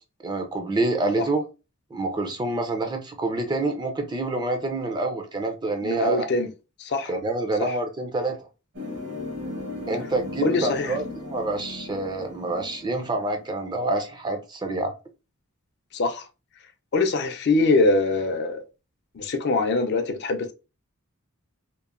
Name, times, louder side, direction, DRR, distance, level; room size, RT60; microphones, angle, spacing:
voice 1, 0.2-1.4 1.9-6.3 7.1-8.5 9.9-14.9, right 2 dB, 20° right, 0.4 m, -27 dB
voice 2, 5.8-6.5 6.8-7.1 7.6-7.8 10.4-11.0 15.9-16.3 16.9-18.6 19.2-20.5, left 3 dB, 50° left, 0.4 m, -23 dB
sound 1, 8.7-13.5, left 2 dB, 60° right, 1.0 m, -37 dB
2.9 x 2.1 x 2.4 m
head